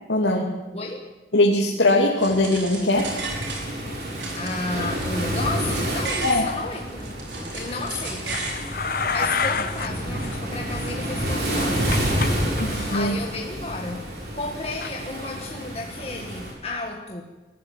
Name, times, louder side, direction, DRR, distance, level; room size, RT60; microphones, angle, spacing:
voice 1, 0.1-0.5 1.3-3.1 6.2-6.4 12.6-13.2, left 1 dB, 85° left, -2 dB, 2.7 m, -20 dB
voice 2, 0.7-1.1 4.3-7.2 7.5-8.5 9.1-11.9 12.9-17.2, left 2 dB, 35° left, 1 dB, 1.7 m, -33 dB
sound 1, 2.2-3.9 4.2-6.4 6.9-8.6, right 3 dB, 85° right, 5.8 m, -35 dB
Waves surf, 2.9-16.5, equal, 55° right, 6.4 m, -29 dB
sound 2, 8.3-9.9 10.1-10.3 10.7-12.3 12.6-13.0 14.8-14.9, left 5 dB, 50° left, 1.2 m, -28 dB
21.5 x 15.0 x 9.2 m, 1.2 s
head